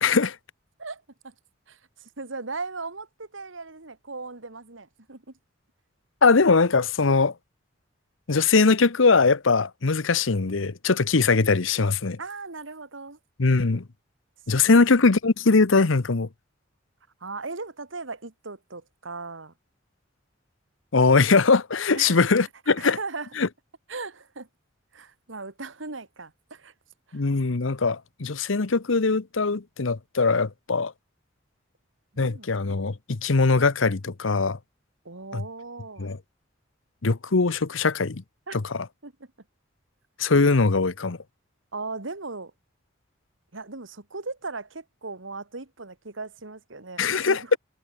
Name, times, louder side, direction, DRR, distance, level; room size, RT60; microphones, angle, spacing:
voice 1, 0.0-0.4 6.2-7.3 8.3-12.2 13.4-13.8 14.5-16.3 20.9-23.0 23.4-23.5 27.1-30.9 32.2-34.6 35.3-35.4 36.0-36.2 37.0-38.2 38.5-38.9 40.2-41.2 47.0-47.6, left 4 dB, 75° left, 0.9 m, -21 dB
voice 2, 0.8-1.3 1.7-5.2 12.2-13.2 14.7-14.8 17.2-19.5 21.9-22.2 22.7-23.3 23.9-24.5 24.9-26.7 27.1-27.2 32.1-32.5 35.0-36.2 38.5-38.6 39.0-39.1 41.7-42.5 43.5-47.6, right 3 dB, 75° right, 2.1 m, -38 dB
head